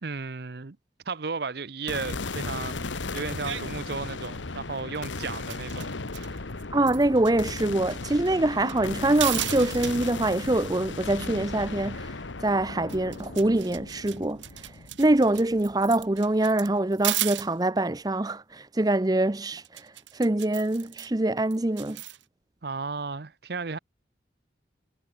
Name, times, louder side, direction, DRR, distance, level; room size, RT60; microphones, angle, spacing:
voice 1, 0.0-0.8 1.1-5.9 6.3-6.5 22.6-23.8, right 4 dB, 60° right, 0.8 m, -34 dB
sound 1, 1.9-16.2, left 3 dB, 90° left, 1.4 m, -36 dB
sound 2, 3.4-3.6 3.9-4.4 4.8-5.0 5.3-7.3 7.6-7.7 7.9-8.8 9.1-10.1 12.5-12.6 12.9-17.5 19.6-21.1 21.5-22.2, right 14 dB, 85° right, 1.6 m, -35 dB
voice 2, 6.7-12.2 12.4-14.7 15.0-22.0, right 2 dB, 20° right, 0.6 m, -24 dB
head